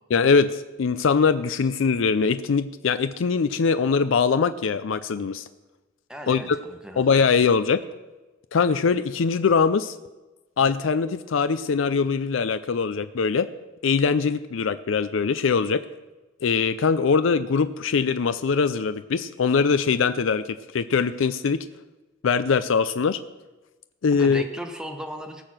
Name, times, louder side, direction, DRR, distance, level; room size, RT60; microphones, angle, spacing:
voice 1, 0.1-5.4 6.3-6.6 7.0-7.8 8.5-10.0 10.6-13.5 13.8-15.8 16.4-21.7 22.2-23.2 24.0-24.4, left 5 dB, 75° left, 12 dB, 0.5 m, -22 dB
voice 2, 6.1-7.1 24.1-25.4, equal, 5° right, 4 dB, 1.2 m, -36 dB
18.0 x 6.8 x 6.0 m, 1.1 s
head